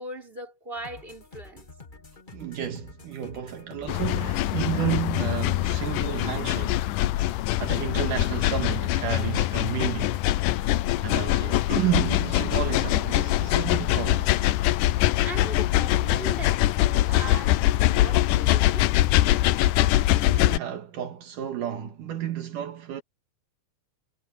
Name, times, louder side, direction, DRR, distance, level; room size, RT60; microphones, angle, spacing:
voice 1, 0.0-1.7 15.2-18.9, right 2 dB, 15° right, 5.9 m, -39 dB
sound 1, 0.8-13.0, left 3 dB, 30° left, 0.9 m, -48 dB
voice 2, 2.3-6.9 7.6-10.2 11.0-14.3 20.0-23.0, right 10 dB, 75° right, 3.2 m, -31 dB
sound 2, 3.9-20.6, left 15 dB, 80° left, 2.1 m, -23 dB
omnidirectional pair, 3.8 m